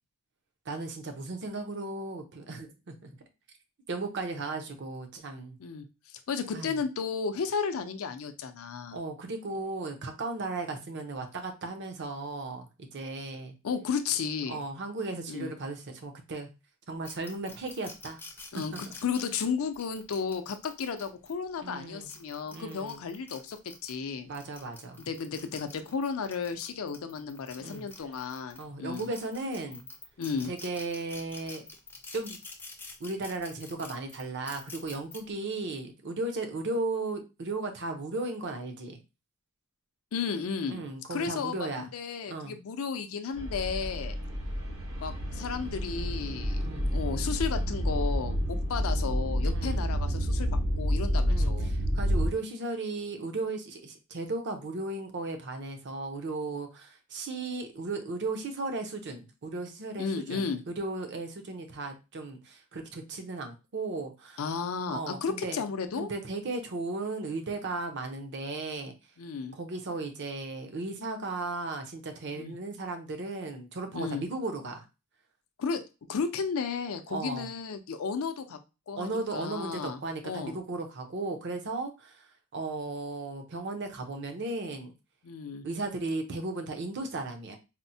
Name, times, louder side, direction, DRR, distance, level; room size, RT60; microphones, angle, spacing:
voice 1, 0.7-3.1 3.9-5.6 6.5-6.8 8.9-13.5 14.5-16.5 16.9-18.2 18.5-18.8 21.6-22.1 22.5-23.0 24.2-25.0 27.6-27.9 28.6-29.9 30.4-31.6 32.1-32.4 33.0-39.0 40.7-41.9 42.3-42.5 46.6-46.9 49.4-49.8 51.3-64.4 64.9-65.6 66.0-68.9 69.5-74.8 77.1-77.5 78.9-82.3 82.5-84.9 85.6-87.6, right 3 dB, 50° right, 6 dB, 0.6 m, -36 dB
voice 2, 5.6-9.0 13.6-14.6 15.3-15.5 18.5-23.6 23.8-24.3 25.0-29.1 30.2-30.5 40.1-40.8 41.1-44.1 45.0-46.6 46.9-50.5 50.8-51.7 60.0-60.6 64.4-66.1 69.2-69.5 72.3-72.5 73.9-74.2 75.6-75.8 76.1-78.6 78.9-80.6 85.2-85.7, left 5 dB, 65° left, 8 dB, 0.4 m, -33 dB
sound 1, 17.0-21.3 21.9-23.9 24.3-28.6 28.9-35.2, left 3 dB, 10° left, 0.4 m, -47 dB
sound 2, 43.3-52.3, equal, 75° right, 1.4 m, -29 dB
4.2 x 2.0 x 2.6 m, 0.28 s
head